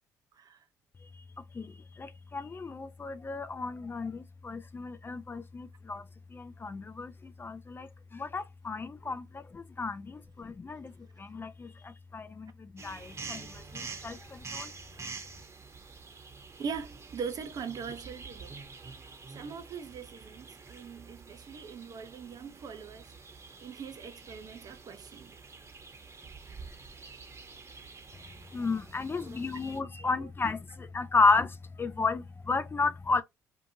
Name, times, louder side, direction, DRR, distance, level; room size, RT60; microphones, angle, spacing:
voice 1, 1.0-14.7 28.5-33.2, left 3 dB, 25° left, 0.4 m, -33 dB
sound 1, 12.8-29.8, right 4 dB, 30° right, 0.9 m, -47 dB
voice 2, 16.6-18.6 19.3-25.5 29.3-29.4 30.0-30.1, right 6 dB, 45° right, 0.6 m, -41 dB
2.7 x 2.5 x 2.7 m
hypercardioid pair, 60°, 9 cm